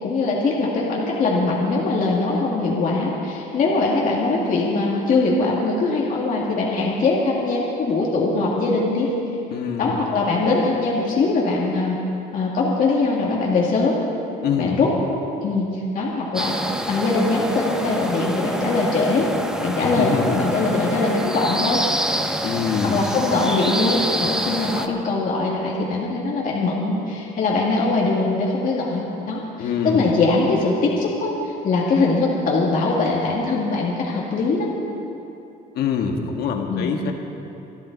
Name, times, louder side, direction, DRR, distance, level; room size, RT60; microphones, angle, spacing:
voice 1, 0.0-9.1 9.8-12.0 12.3-14.0 14.6-14.9 15.4-16.5 16.9-19.3 19.6-21.8 22.8-34.7 36.7-36.9, left 3 dB, 50° left, -4 dB, 2.3 m, -22 dB
voice 2, 9.5-10.0 14.4-14.8 19.8-20.5 22.4-23.0 29.6-30.1 35.7-37.1, left 6 dB, 70° left, 3 dB, 1.7 m, -24 dB
sound 1, 16.3-24.9, equal, 5° right, 0.9 m, -27 dB
26.0 x 10.5 x 4.1 m, 2.8 s
cardioid pair, 110°, 17 cm